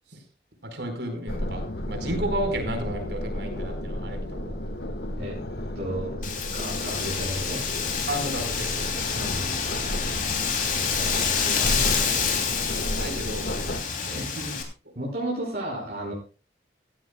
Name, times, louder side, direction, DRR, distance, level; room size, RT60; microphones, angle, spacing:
voice 1, 0.6-4.6 8.1-8.9 12.9-14.5, right 1 dB, 75° right, 6 dB, 4.6 m, -33 dB
sound 1, 1.3-13.8, left 1 dB, 65° left, 1.7 m, -33 dB
voice 2, 5.8-6.2 6.5-7.6 9.2-9.5 11.0-12.5 14.1-14.3 15.0-16.1, right 1 dB, 60° right, -4 dB, 5.4 m, -33 dB
Wind, 6.2-14.6, left 6 dB, 45° left, 3.1 m, -28 dB
16.5 x 15.5 x 2.3 m, 0.33 s
head